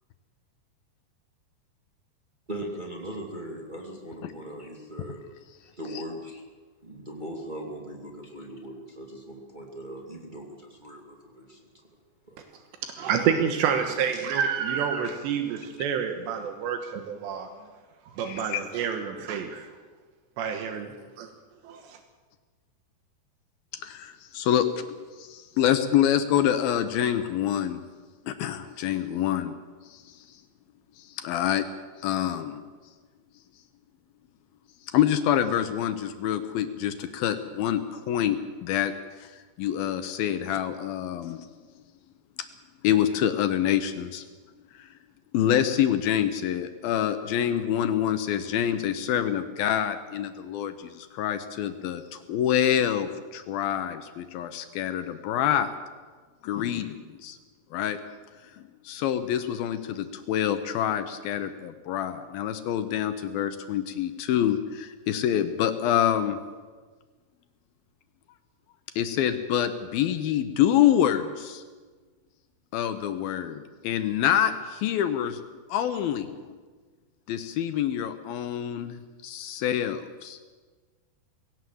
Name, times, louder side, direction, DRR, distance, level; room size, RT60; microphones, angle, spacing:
voice 1, 2.5-5.2 5.6-6.4 6.8-11.9 12.2-12.7, right 1 dB, 20° right, 0 dB, 1.1 m, -39 dB
voice 2, 13.0-17.5 18.1-19.7 20.4-21.3 21.6-22.0, right 7 dB, 80° right, 6 dB, 3.4 m, -28 dB
voice 3, 18.3-18.6 23.7-27.8 28.3-29.5 29.9-30.2 31.0-31.7 32.0-32.6 34.9-41.5 42.8-44.2 44.8-44.9 45.3-55.7 56.4-57.4 57.7-58.0 58.8-66.4 69.0-71.6 72.7-75.4 75.7-76.3 77.3-80.4, left 10 dB, 75° left, 9 dB, 2.4 m, -26 dB
20.0 x 17.5 x 7.7 m, 1.4 s
omnidirectional pair, 4.9 m